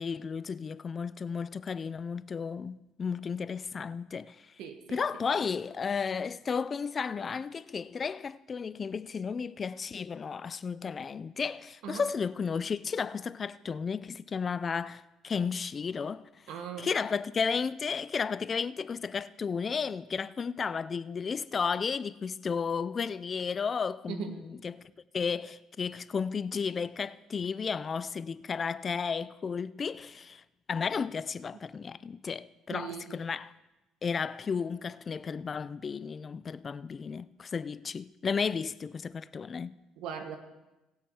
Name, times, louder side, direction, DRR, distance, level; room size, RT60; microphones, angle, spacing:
voice 1, 0.0-4.6 4.9-16.4 16.8-24.8 25.1-30.4 30.7-33.5 34.0-39.8, left 6 dB, 35° left, 0.3 m, -33 dB
voice 2, 4.6-5.2 11.8-12.0 16.5-16.9 24.1-24.4 32.7-33.1 40.0-40.4, right 7 dB, 80° right, 1.4 m, -39 dB
17.5 x 6.3 x 4.7 m
cardioid pair, 110°, 0 cm